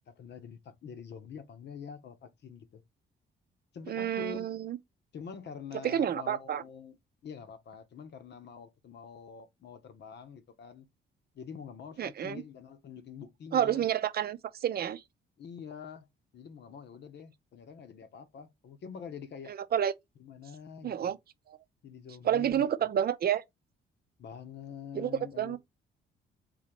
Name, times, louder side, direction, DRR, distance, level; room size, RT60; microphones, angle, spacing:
voice 1, 0.1-2.8 3.7-4.5 5.1-7.0 7.2-10.9 11.3-13.9 15.4-16.1 16.3-19.5 20.2-21.1 21.8-22.7 24.2-25.6, left 6 dB, 60° left, 0.9 m, -46 dB
voice 2, 3.9-4.8 5.8-6.6 12.0-12.4 13.5-15.0 19.5-19.9 20.8-21.2 22.2-23.4 24.9-25.1 25.4-25.6, right 10 dB, 50° right, 0.6 m, -29 dB
3.9 x 2.8 x 4.4 m
cardioid pair, 90°, 20 cm